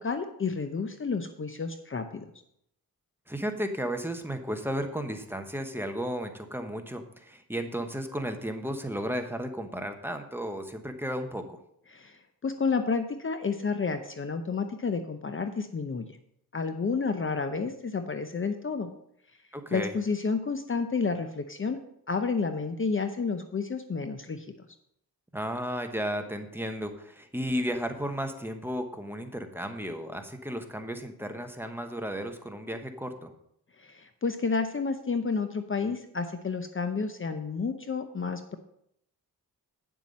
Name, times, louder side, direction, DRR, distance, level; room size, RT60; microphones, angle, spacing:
voice 1, 0.0-2.2 11.9-12.2 12.4-16.1 16.5-18.9 19.7-21.8 22.1-24.5 33.8-38.6, left 4 dB, 35° left, 8 dB, 0.8 m, -30 dB
voice 2, 3.3-11.6 19.5-19.9 25.3-33.3, equal, 5° right, 5 dB, 1.1 m, -34 dB
9.1 x 7.4 x 5.3 m, 0.73 s
cardioid pair, 90°, 36 cm